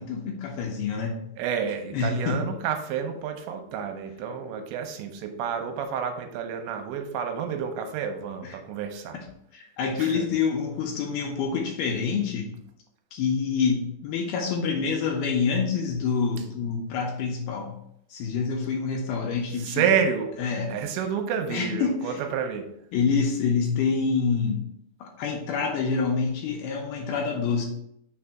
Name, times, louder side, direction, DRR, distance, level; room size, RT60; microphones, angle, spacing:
voice 1, 0.0-1.2 1.9-2.4 8.4-8.6 9.1-9.2 9.5-12.5 13.1-17.8 18.1-19.9 20.4-20.8 21.5-22.2 22.9-24.7 25.0-27.7, left 5 dB, 75° left, 1 dB, 2.5 m, -27 dB
voice 2, 1.4-9.2 10.0-10.3 19.6-20.4 20.7-22.7, right 7 dB, 80° right, 5 dB, 2.9 m, -29 dB
6.5 x 3.3 x 5.8 m, 0.74 s
omnidirectional pair, 5.3 m